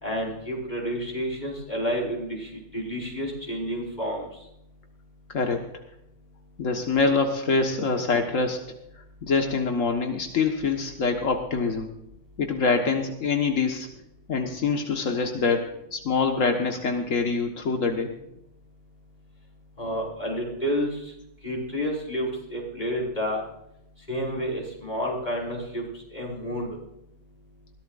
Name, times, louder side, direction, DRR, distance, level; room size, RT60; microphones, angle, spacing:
voice 1, 0.0-4.3 19.8-20.9 21.4-23.4 24.1-25.8 26.1-26.7, equal, 35° left, -2 dB, 5.3 m, -30 dB
voice 2, 5.3-5.6 6.6-8.6 9.2-11.9 12.4-13.9 14.3-18.1, left 4 dB, 85° left, 3 dB, 1.8 m, -25 dB
21.5 x 16.0 x 2.5 m, 0.82 s
omnidirectional pair, 1.3 m